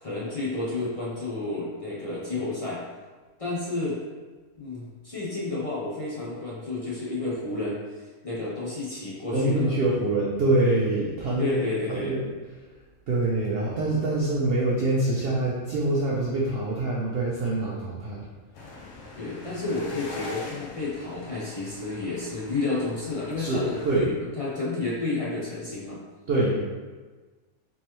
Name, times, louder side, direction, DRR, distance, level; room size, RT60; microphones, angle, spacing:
voice 1, 0.0-2.8 3.4-4.0 4.6-9.7 11.4-12.2 19.2-26.0, left 2 dB, 40° left, -7 dB, 0.5 m, -31 dB
voice 2, 9.3-11.6 11.9-12.3 13.1-18.2 23.4-24.1 26.3-26.6, right 2 dB, 65° right, -4 dB, 0.6 m, -25 dB
sound 1, 18.5-24.0, left 2 dB, 65° left, 0.9 m, -42 dB
3.6 x 3.1 x 3.0 m, 1.3 s
omnidirectional pair, 1.5 m